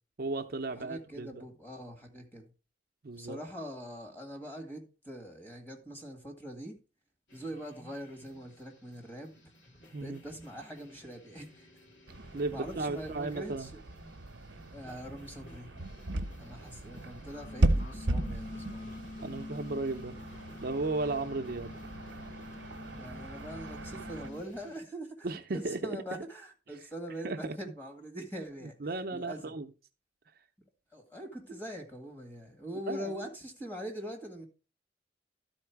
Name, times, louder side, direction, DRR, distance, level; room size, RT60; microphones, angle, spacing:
voice 1, 0.2-1.4 3.0-3.4 9.9-10.2 12.3-13.7 19.2-20.2 20.6-21.7 25.2-26.0 27.2-27.6 28.6-29.7 32.9-33.2, right 3 dB, 55° right, 0.6 m, -35 dB
voice 2, 0.7-2.5 3.2-6.7 7.3-9.3 10.0-11.7 12.5-13.8 14.7-15.7 16.4-18.9 22.9-28.8 29.1-29.5 30.9-34.5, equal, 10° left, 1.9 m, -43 dB
sound 1, 7.3-24.8, equal, 85° left, 2.7 m, -57 dB
sound 2, 12.1-24.3, right 1 dB, 90° right, 0.8 m, -36 dB
sound 3, 17.2-24.4, left 2 dB, 50° left, 0.6 m, -46 dB
12.5 x 4.3 x 4.6 m
head